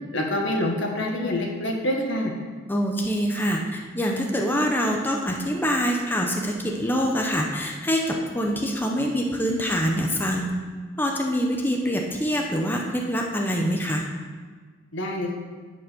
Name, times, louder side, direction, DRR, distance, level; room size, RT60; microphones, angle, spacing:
voice 1, 0.1-2.3 14.9-15.4, left 1 dB, 65° left, 1 dB, 1.6 m, -26 dB
voice 2, 2.7-10.5 11.0-14.0, equal, 10° left, 0 dB, 0.8 m, -25 dB
11.0 x 5.4 x 6.9 m, 1.5 s
head